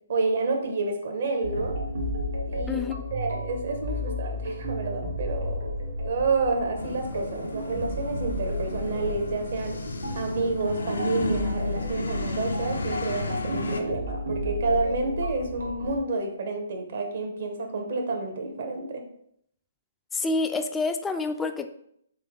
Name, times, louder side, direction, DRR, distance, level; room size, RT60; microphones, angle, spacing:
voice 1, 0.1-1.8 2.5-2.8 3.1-5.7 6.0-9.8 10.1-19.0, right 3 dB, 60° right, 4 dB, 1.0 m, -29 dB
sound 1, 1.4-16.0, left 1 dB, 85° right, 1.2 m, -33 dB
voice 2, 2.7-3.0 20.1-21.7, left 3 dB, 10° left, 7 dB, 0.3 m, -28 dB
sound 2, 6.8-13.8, left 2 dB, 85° left, 0.6 m, -33 dB
3.7 x 3.3 x 3.6 m, 0.70 s
hypercardioid pair, 145°, 0 cm